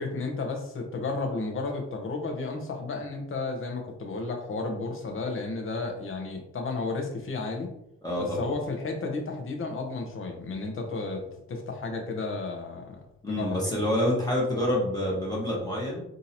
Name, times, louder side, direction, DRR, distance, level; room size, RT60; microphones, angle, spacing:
voice 1, 0.0-7.7 8.2-11.2 11.5-13.8, left 3 dB, 45° left, 2 dB, 0.9 m, -33 dB
voice 2, 8.0-8.5 13.2-16.0, left 1 dB, 15° left, -5 dB, 1.2 m, -27 dB
3.7 x 2.7 x 2.8 m, 0.82 s
cardioid pair, 90°, 30 cm